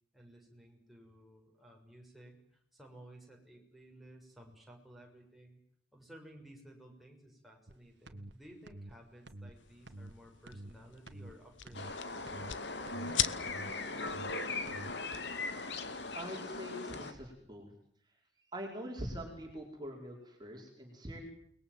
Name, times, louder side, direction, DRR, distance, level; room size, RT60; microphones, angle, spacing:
voice 1, 0.1-5.6 5.9-12.2, right 1 dB, ahead, 0 dB, 6.4 m, -56 dB
sound 1, 7.7-7.8 8.1-8.3 8.7-8.9 9.3-9.5 9.9-10.1 10.5-10.7 11.1-11.3 11.7-11.9 12.3-12.5 12.9-13.1 13.5-13.7 14.1-14.3 14.7-14.9, right 1 dB, 70° right, 1.7 m, -48 dB
sound 2, 9.6-16.3, left 11 dB, 85° left, 1.2 m, -42 dB
sound 3, 11.7-17.1, left 3 dB, 65° left, 2.7 m, -39 dB
voice 2, 16.1-17.7 18.1-21.2, equal, 25° right, 0 dB, 5.2 m, -44 dB
29.5 x 21.0 x 7.7 m, 0.67 s
head